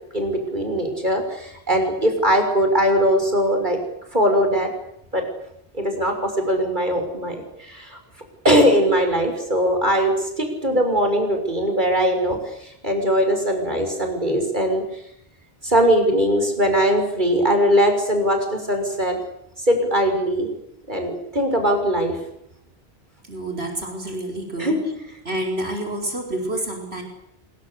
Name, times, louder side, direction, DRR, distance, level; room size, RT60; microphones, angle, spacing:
voice 1, 0.1-3.8 4.1-4.7 5.1-5.2 5.7-8.0 8.4-14.8 15.6-19.2 19.6-20.5 20.9-22.2 24.6-24.8, equal, 50° right, 5 dB, 6.3 m, -20 dB
voice 2, 23.3-24.8 25.2-27.0, right 1 dB, 90° right, 2 dB, 5.7 m, -28 dB
26.5 x 23.5 x 8.4 m, 0.75 s
omnidirectional pair, 1.0 m